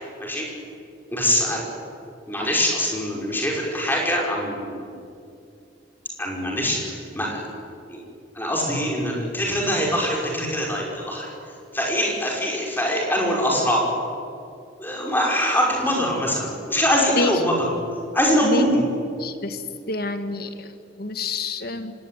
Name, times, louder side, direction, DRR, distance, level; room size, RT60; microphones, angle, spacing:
voice 1, 1.1-1.6 2.3-4.9 6.2-7.4 7.9-8.0 8.3-11.3 11.7-13.8 14.8-17.7 18.1-18.8, equal, 10° left, -2 dB, 5.7 m, -23 dB
voice 2, 19.2-19.6 19.9-20.7 21.0-21.9, left 2 dB, 55° left, 9 dB, 1.7 m, -27 dB
25.0 x 19.0 x 9.4 m, 2.5 s
head